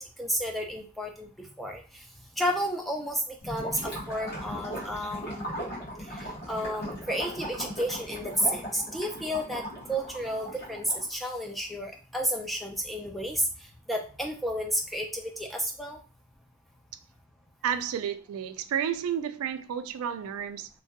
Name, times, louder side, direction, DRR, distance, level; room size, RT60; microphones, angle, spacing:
voice 1, 0.0-1.8 2.4-5.6 6.1-9.6 9.9-13.5 13.9-16.0, equal, ahead, 0.4 m, -31 dB
Gurgling / Liquid, 3.4-11.1, equal, 50° left, 1.2 m, -38 dB
voice 2, 17.6-20.7, right 8 dB, 90° right, 0.3 m, -31 dB
2.8 x 2.2 x 2.8 m
head